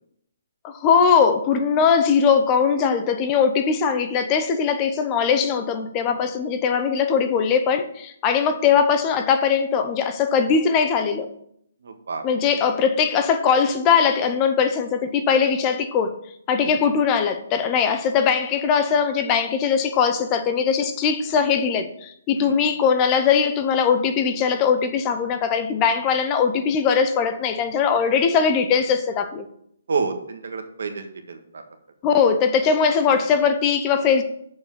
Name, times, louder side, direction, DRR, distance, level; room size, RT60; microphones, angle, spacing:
voice 1, 0.6-11.3 12.2-16.2 16.5-29.5 32.0-34.2, left 6 dB, 25° left, 0.7 m, -20 dB
voice 2, 11.8-12.2 16.6-16.7 22.4-22.7 29.9-31.6, right 5 dB, 75° right, 1.5 m, -29 dB
6.7 x 5.4 x 7.0 m
hypercardioid pair, 155°, 0 cm